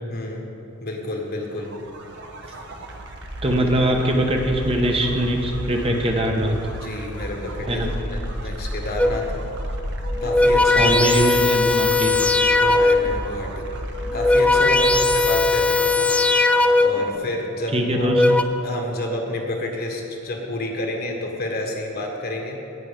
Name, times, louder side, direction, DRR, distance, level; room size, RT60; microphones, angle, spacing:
voice 1, 0.1-0.5 0.8-1.7 6.7-9.5 10.2-11.1 12.6-13.7 14.1-16.2 16.8-18.3 18.6-22.6, left 1 dB, 50° left, 1 dB, 1.6 m, -29 dB
sound 1, 1.4-17.1, right 1 dB, 60° right, 1.2 m, -33 dB
voice 2, 3.4-6.6 7.7-7.9 10.8-12.1 17.7-18.2, right 1 dB, 30° right, 2 dB, 1.1 m, -22 dB
sound 2, 9.0-9.4 10.1-13.2 14.0-17.2 17.9-18.4, left 3 dB, 5° left, 0.4 m, -19 dB
18.0 x 6.0 x 5.2 m, 3.0 s
head